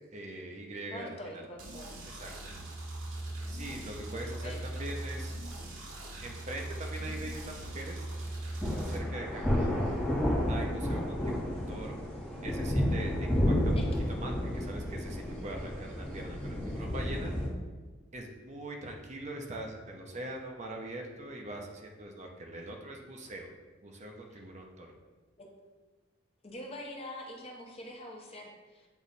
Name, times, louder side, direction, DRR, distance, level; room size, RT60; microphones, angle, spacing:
voice 1, 0.1-1.5 2.1-2.5 3.5-5.3 6.2-8.1 8.8-9.7 10.5-12.0 12.4-13.8 14.1-17.4 18.1-23.5 23.8-24.9, right 1 dB, 35° right, 1 dB, 0.7 m, -42 dB
voice 2, 0.9-2.0 4.1-4.9 7.0-7.1 13.7-13.8 16.1-16.2 25.4-25.5 26.4-28.9, left 1 dB, 30° left, 0 dB, 0.8 m, -45 dB
sound 1, 1.6-9.0, right 1 dB, 80° right, 1.2 m, -40 dB
sound 2, 8.6-17.5, equal, 5° left, 1.6 m, -31 dB
8.1 x 3.1 x 4.1 m, 1.3 s
head